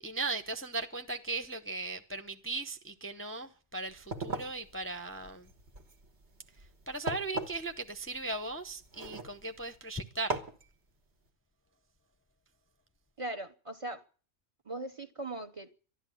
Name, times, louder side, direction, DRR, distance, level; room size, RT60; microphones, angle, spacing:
voice 1, 0.0-5.5 6.6-10.4, right 3 dB, 15° left, 0.6 m, -38 dB
sound 1, 3.9-9.8 10.3-10.6, right 2 dB, 70° right, 1.8 m, -40 dB
voice 2, 13.2-14.0 14.6-15.8, right 2 dB, 30° right, 0.8 m, -39 dB
12.5 x 11.5 x 9.1 m
omnidirectional pair, 1.2 m